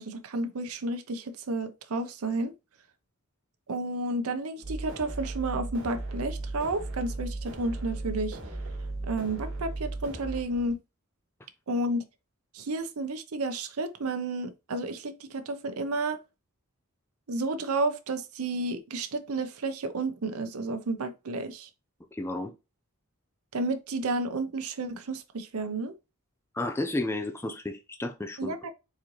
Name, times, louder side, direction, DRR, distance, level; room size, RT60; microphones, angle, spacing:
voice 1, 0.0-2.5 3.7-8.4 9.0-10.8 11.7-12.1 12.5-16.2 17.3-21.7 23.5-25.9 28.4-28.7, right 2 dB, 75° right, 0.7 m, -31 dB
sound 1, 4.6-10.4, right 2 dB, 55° right, 1.5 m, -36 dB
sound 2, 5.7-10.7, equal, 70° left, 1.7 m, -52 dB
voice 2, 22.1-22.5 26.5-28.5, left 2 dB, 10° left, 0.5 m, -32 dB
4.3 x 3.7 x 3.0 m
head